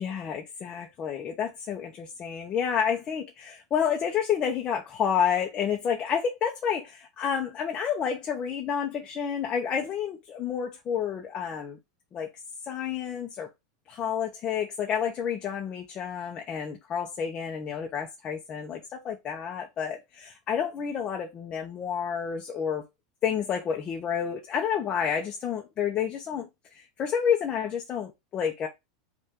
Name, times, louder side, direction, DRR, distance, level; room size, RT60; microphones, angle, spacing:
voice 1, 0.0-11.8 12.1-12.3 12.6-13.5 13.9-22.8 23.2-26.5 26.7-28.7, left 7 dB, 30° left, 0.7 m, -30 dB
5.5 x 2.5 x 3.6 m
supercardioid pair, 145°, 3 cm